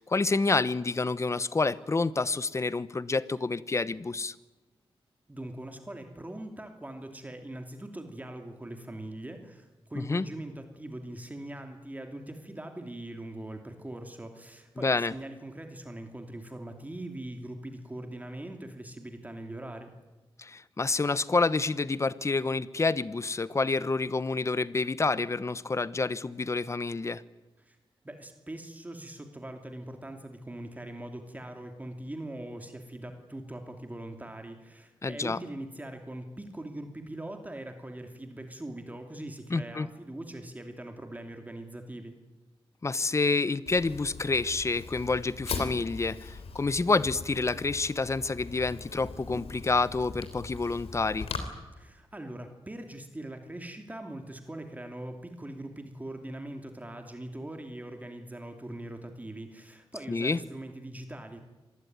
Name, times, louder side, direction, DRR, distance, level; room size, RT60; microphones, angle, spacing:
voice 1, 0.0-4.3 9.9-10.3 14.8-15.1 20.4-27.2 35.0-35.4 39.5-39.9 42.8-51.3 60.1-60.4, left 3 dB, 30° left, 17 dB, 1.0 m, -28 dB
voice 2, 5.3-19.9 27.6-27.8 28.0-42.2 51.8-61.4, right 1 dB, 15° right, 5 dB, 2.7 m, -41 dB
Fire, 43.7-51.4, left 4 dB, 85° left, 3.4 m, -40 dB
26.5 x 19.5 x 9.5 m, 1.1 s
wide cardioid pair, 105°, 10 cm